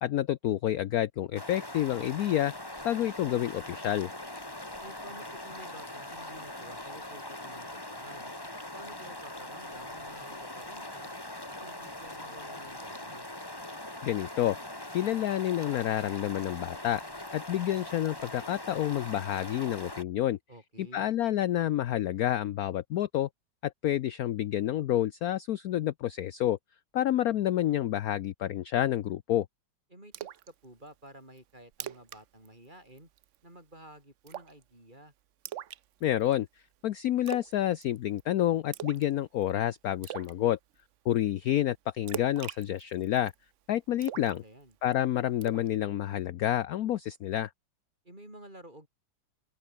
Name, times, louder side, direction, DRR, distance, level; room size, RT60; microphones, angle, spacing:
voice 1, 0.0-2.5 2.8-4.1 14.0-14.6 14.9-17.0 17.3-20.4 20.8-23.3 23.6-26.6 26.9-29.5 36.0-36.5 36.8-40.6 41.0-43.3 43.7-44.4 44.8-47.5, left 12 dB, 65° left, 0.9 m, -29 dB
sound 1, 1.3-20.0, left 1 dB, 10° left, 2.7 m, -42 dB
voice 2, 4.8-8.3 8.7-11.1 11.6-13.3 20.5-21.1 29.9-33.1 33.4-35.1 44.1-44.8 48.0-48.9, right 1 dB, 25° right, 7.1 m, -51 dB
Splash splatter, 30.1-30.5 30.9-31.0 31.4-31.5 31.7-32.2 32.5-32.7 33.0-33.4 34.3-34.6 35.5-36.3 37.3-37.6 37.8-38.2 38.7-39.1 39.4-39.5 40.0-40.3 42.1-43.3 44.0-44.9 45.4-45.7, right 11 dB, 75° right, 0.7 m, -40 dB
open air
omnidirectional pair, 2.1 m